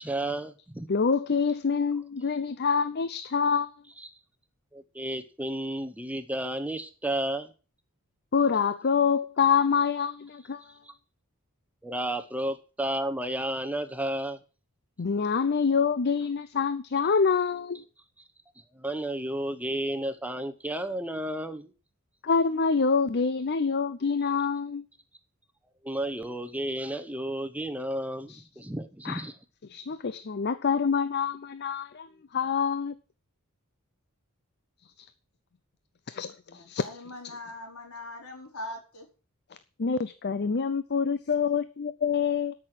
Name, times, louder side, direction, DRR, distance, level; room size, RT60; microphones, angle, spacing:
voice 1, 0.0-0.9 4.0-4.1 4.7-7.5 11.8-14.4 18.7-21.7 25.8-29.3, right 1 dB, 5° right, 0.9 m, -32 dB
voice 2, 0.9-3.7 8.3-10.6 15.0-17.8 22.2-24.9 28.3-28.4 29.0-29.3 29.6-33.0 36.1-36.8 39.8-42.5, left 5 dB, 50° left, 0.6 m, -26 dB
voice 3, 36.5-39.1, left 1 dB, 75° left, 4.3 m, -41 dB
13.0 x 6.3 x 7.4 m
head